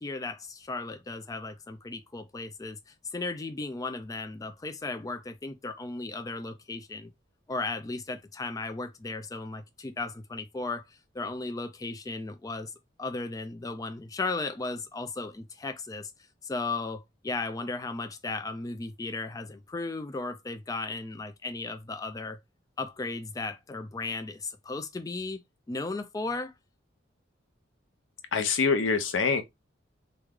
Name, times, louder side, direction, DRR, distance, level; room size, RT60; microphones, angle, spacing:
voice 1, 0.0-7.1 7.5-12.7 13.0-16.1 16.4-22.4 22.8-25.4 25.7-26.5, left 3 dB, 20° left, 0.3 m, -35 dB
voice 2, 28.3-29.4, left 5 dB, 90° left, 0.6 m, -25 dB
3.1 x 2.2 x 3.6 m
head